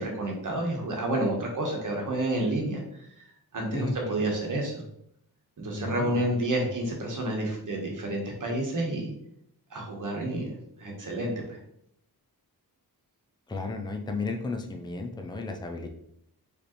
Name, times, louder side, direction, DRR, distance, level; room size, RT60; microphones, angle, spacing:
voice 1, 0.0-3.1 3.5-4.8 5.6-9.1 9.7-11.6, right 1 dB, 55° right, 0 dB, 1.2 m, -30 dB
voice 2, 3.7-4.2 5.7-6.4 13.5-15.9, left 3 dB, 10° left, 4 dB, 0.4 m, -34 dB
4.9 x 3.3 x 3.0 m, 0.75 s
wide cardioid pair, 175°, 38 cm